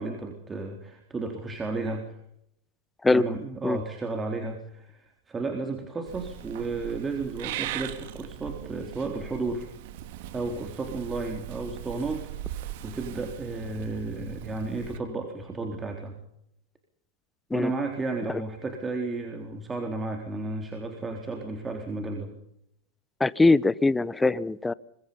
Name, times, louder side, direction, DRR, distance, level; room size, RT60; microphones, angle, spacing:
voice 1, 0.0-2.1 3.1-9.7 10.3-12.3 12.8-16.2 17.5-22.3, right 3 dB, 20° right, 3 dB, 3.9 m, -33 dB
Purr / Meow, 6.1-15.0, right 13 dB, 60° right, 2.3 m, -39 dB
voice 2, 23.2-24.7, left 3 dB, 10° left, 20 dB, 0.9 m, -22 dB
25.5 x 22.5 x 5.5 m, 0.76 s
hypercardioid pair, 95°, 0 cm